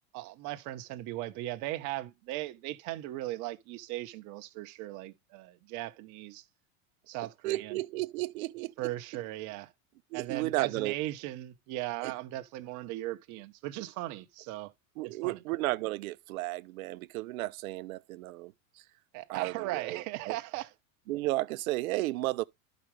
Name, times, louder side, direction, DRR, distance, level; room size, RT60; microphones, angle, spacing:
voice 1, 0.1-6.4 7.1-7.8 8.8-9.7 10.1-14.7 15.0-15.4 19.1-20.7, right 16 dB, 45° right, 1.0 m, -38 dB
voice 2, 7.4-8.7 10.1-10.9 12.0-12.1 15.0-18.5 19.3-20.4 21.1-22.4, right 18 dB, 75° right, 0.7 m, -33 dB
12.0 x 5.1 x 3.3 m
supercardioid pair, 135°, 41 cm